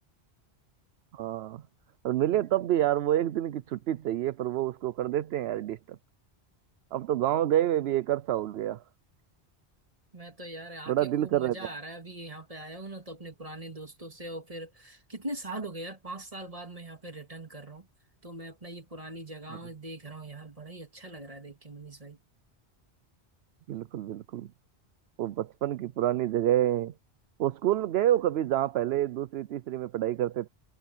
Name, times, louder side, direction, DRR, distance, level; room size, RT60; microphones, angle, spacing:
voice 1, 1.1-1.6 2.0-6.0 6.9-8.8 10.9-11.6 23.7-24.5 25.2-26.9 27.4-30.5, right 12 dB, 75° right, 0.8 m, -28 dB
voice 2, 10.1-17.9 18.2-22.2, right 1 dB, 35° right, 2.5 m, -41 dB
omnidirectional pair, 1.1 m